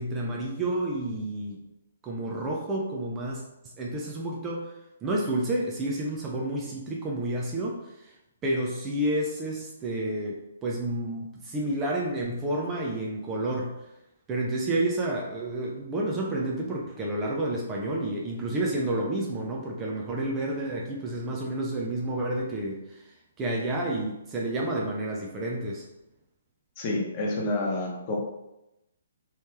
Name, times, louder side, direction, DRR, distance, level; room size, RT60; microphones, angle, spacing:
voice 1, 0.0-1.6 2.0-8.2 8.4-13.9 14.3-25.9, right 1 dB, 20° right, -2 dB, 0.5 m, -30 dB
voice 2, 26.8-28.2, left 2 dB, 30° left, -2 dB, 0.9 m, -28 dB
3.1 x 3.1 x 3.0 m, 0.90 s
figure-of-eight pair, 125°, 0 cm